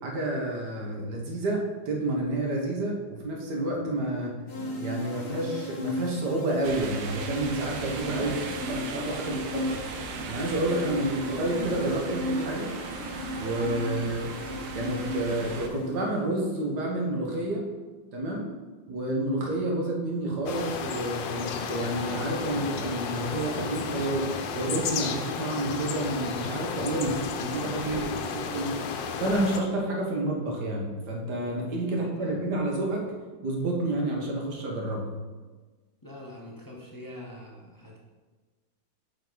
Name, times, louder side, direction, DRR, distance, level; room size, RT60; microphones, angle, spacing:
voice 1, 0.0-4.3 4.8-8.3 8.7-9.6 10.3-12.7 13.4-14.3 14.7-17.6 18.1-18.4 18.9-24.3 24.5-28.0 28.5-28.7 29.2-33.0 33.4-35.0, right 1 dB, 65° right, -1 dB, 1.8 m, -29 dB
sound 1, 4.5-16.3, left 1 dB, 40° left, 1.2 m, -36 dB
sound 2, 6.6-15.7, right 4 dB, 80° right, 1.4 m, -38 dB
voice 2, 8.1-9.8 10.9-11.3 27.8-28.4 31.9-32.5 36.0-38.0, equal, 20° left, -3 dB, 0.5 m, -43 dB
sound 3, 20.5-29.6, left 6 dB, 85° left, 1.3 m, -33 dB
7.5 x 5.1 x 3.9 m, 1.3 s
omnidirectional pair, 2.0 m